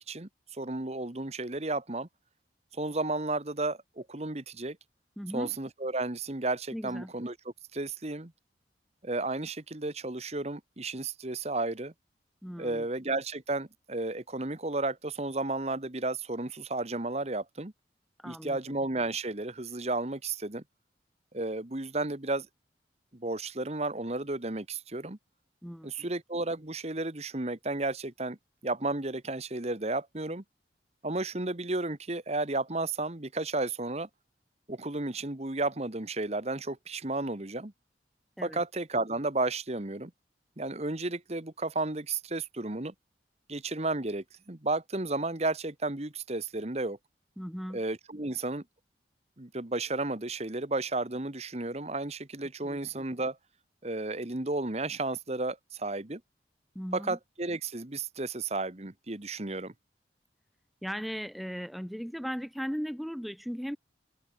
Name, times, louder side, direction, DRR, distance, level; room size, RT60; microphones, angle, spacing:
voice 1, 0.0-2.1 2.7-4.8 5.3-7.3 7.7-8.3 9.0-11.9 12.6-17.7 18.2-20.6 21.3-22.5 23.1-25.2 25.8-28.4 28.6-30.4 31.0-34.1 34.7-37.7 38.4-40.1 40.6-42.9 43.5-47.0 47.7-48.6 49.4-53.4 53.8-56.2 56.9-59.7, right 2 dB, 35° right, 1.4 m, -33 dB
voice 2, 5.2-5.5 6.7-7.1 12.4-12.9 18.2-18.8 25.6-26.1 38.4-38.6 47.4-47.8 56.8-57.2 60.8-63.8, equal, ahead, 1.8 m, -38 dB
open air
head